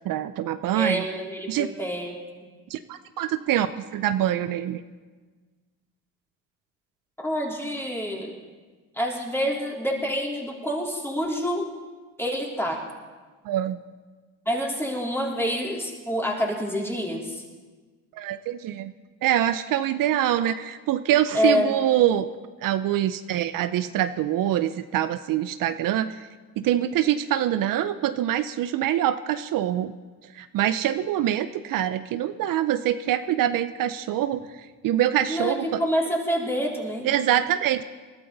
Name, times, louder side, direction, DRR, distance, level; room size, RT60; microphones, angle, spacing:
voice 1, 0.0-1.1 1.5-1.7 2.7-3.7 3.9-4.8 13.5-13.8 18.1-18.9 19.2-22.3 22.6-26.3 26.6-29.9 30.3-35.8 37.0-37.8, right 11 dB, 65° right, 12 dB, 0.6 m, -24 dB
voice 2, 0.7-2.2 7.2-8.3 8.9-11.7 12.2-12.8 14.5-17.4 21.3-21.8 35.3-37.1, equal, 5° left, -2 dB, 3.6 m, -27 dB
21.5 x 12.5 x 4.0 m, 1.4 s
supercardioid pair, 80°, 35 cm